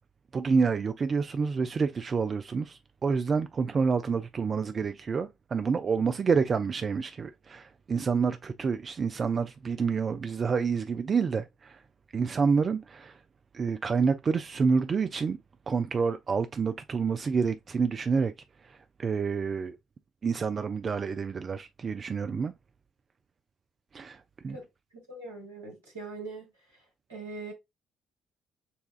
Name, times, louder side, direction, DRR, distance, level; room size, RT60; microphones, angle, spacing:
voice 1, 0.3-11.8 12.1-13.2 13.5-15.4 15.7-18.3 18.6-19.8 20.2-22.5 23.9-24.6, right 5 dB, 40° right, 0.3 m, -28 dB
voice 2, 25.1-26.5 27.1-27.5, right 3 dB, 85° right, 1.5 m, -41 dB
6.8 x 2.3 x 2.4 m
figure-of-eight pair, 45°, 0 cm